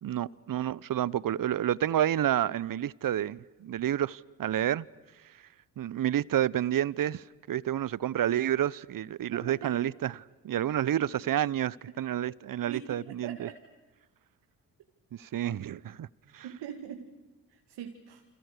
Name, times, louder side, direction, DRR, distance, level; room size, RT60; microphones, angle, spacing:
voice 1, 0.0-4.9 5.8-13.5 15.1-16.1 16.3-16.5, right 11 dB, 50° right, 23 dB, 0.9 m, -29 dB
voice 2, 9.2-9.8 10.9-11.1 12.7-13.6 16.4-17.1 17.5-18.2, right 9 dB, 70° right, 4 dB, 2.3 m, -42 dB
29.5 x 27.0 x 6.7 m, 1.1 s
hypercardioid pair, 40°, 43 cm